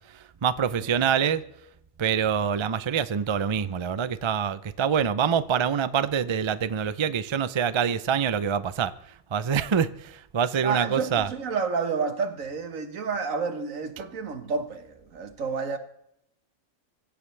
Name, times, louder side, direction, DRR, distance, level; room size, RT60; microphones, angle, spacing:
voice 1, 0.4-1.4 2.0-8.9 9.3-11.3, right 7 dB, 45° right, 0.3 m, -25 dB
voice 2, 10.6-15.8, right 5 dB, 80° right, 1.7 m, -30 dB
24.0 x 15.0 x 3.3 m
omnidirectional pair, 1.4 m